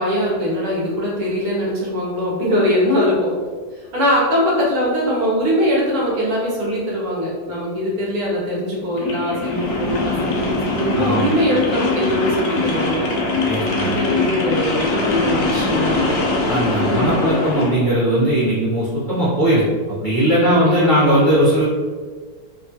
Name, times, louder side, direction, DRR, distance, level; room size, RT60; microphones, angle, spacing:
voice 1, 0.0-3.3 3.9-13.0 13.8-16.4 16.9-17.1 20.4-21.4, equal, 65° right, -5 dB, 1.2 m, -21 dB
sound 1, 8.9-17.8, left 3 dB, 70° left, 1.0 m, -22 dB
voice 2, 10.9-11.3 13.4-14.0 16.5-21.6, right 1 dB, 40° left, -11 dB, 0.7 m, -18 dB
2.9 x 2.3 x 2.7 m, 1.5 s
omnidirectional pair, 1.7 m